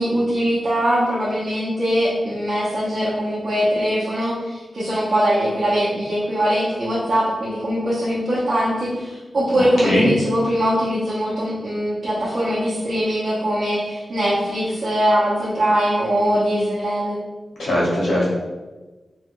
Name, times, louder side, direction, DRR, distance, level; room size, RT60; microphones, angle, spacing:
voice 1, 0.0-17.2, equal, 60° right, -11 dB, 0.8 m, -21 dB
voice 2, 9.5-10.1 17.6-18.3, equal, 85° left, -6 dB, 1.3 m, -20 dB
3.2 x 2.2 x 3.1 m, 1.2 s
wide cardioid pair, 130°, 0 cm